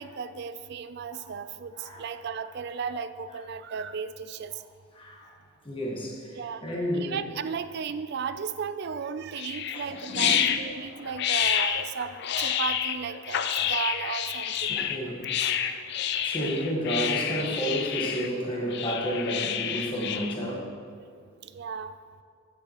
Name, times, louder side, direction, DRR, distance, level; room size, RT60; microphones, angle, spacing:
voice 1, 0.0-4.6 6.3-14.8 19.7-19.8 21.2-21.9, right 6 dB, 50° right, 12 dB, 0.3 m, -35 dB
voice 2, 1.7-2.1 4.9-5.4 5.6-7.2 9.7-10.5 14.7-15.3 16.2-20.7, equal, 25° left, -3 dB, 1.4 m, -31 dB
sound 1, 9.4-20.3, left 9 dB, 50° left, 0.4 m, -29 dB
10.5 x 9.3 x 3.0 m, 2.1 s
head